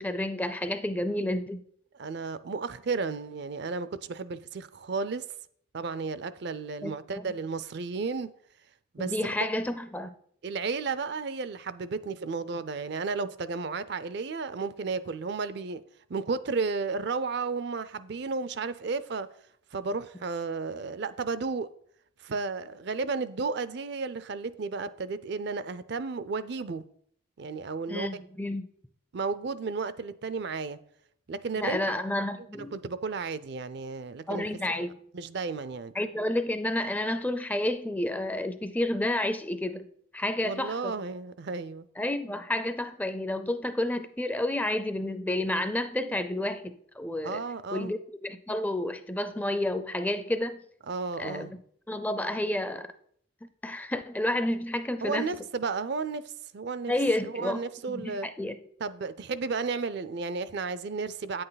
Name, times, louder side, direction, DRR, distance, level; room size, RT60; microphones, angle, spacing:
voice 1, 0.0-1.6 6.8-7.3 9.0-10.1 27.9-28.7 31.6-32.7 34.3-35.0 35.9-39.9 40.1-41.0 42.0-47.4 47.7-50.6 51.2-51.6 51.9-52.9 53.6-55.3 56.9-58.6, left 1 dB, 10° left, 0.4 m, -30 dB
voice 2, 2.0-5.2 5.7-8.3 8.9-9.1 10.4-15.8 16.1-19.3 19.7-21.7 22.2-26.8 27.4-28.1 29.1-30.8 31.3-32.0 32.7-34.5 35.1-35.9 40.4-41.9 47.2-47.9 50.9-51.5 55.0-56.2 56.5-56.9 57.2-58.3 58.8-61.4, right 4 dB, 55° right, 0.4 m, -33 dB
9.2 x 7.7 x 4.0 m
head